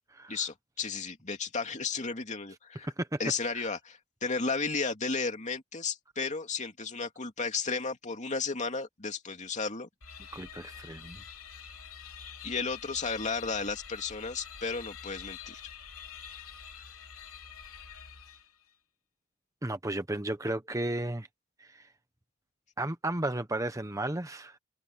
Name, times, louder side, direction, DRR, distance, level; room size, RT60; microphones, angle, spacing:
voice 1, 0.3-2.9 3.2-9.9 12.4-15.6, left 4 dB, 35° left, 2.7 m, -33 dB
voice 2, 2.8-3.2 3.5-3.7 10.3-11.2 19.6-21.3 21.6-21.9 22.8-24.6, right 1 dB, 15° right, 0.9 m, -34 dB
sound 1, 10.0-18.7, left 7 dB, 85° left, 3.4 m, -46 dB
head